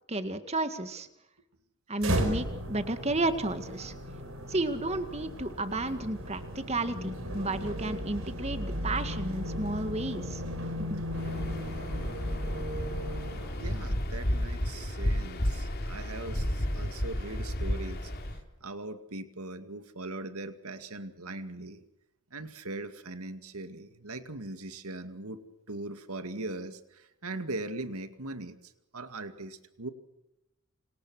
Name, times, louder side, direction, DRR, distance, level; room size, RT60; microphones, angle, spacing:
voice 1, 0.1-1.1 1.9-3.9 4.5-10.4 10.9-11.0, right 2 dB, 30° right, 9 dB, 2.0 m, -32 dB
sound 1, 2.0-14.0, equal, 65° right, 5.4 m, -36 dB
Waves surf, 11.1-18.4, equal, 45° left, 3.3 m, -32 dB
voice 2, 13.6-18.1 18.6-21.8 22.3-25.4 25.7-28.6 28.9-29.9, right 2 dB, 80° right, 9 dB, 2.2 m, -40 dB
29.0 x 27.0 x 6.3 m, 0.90 s
head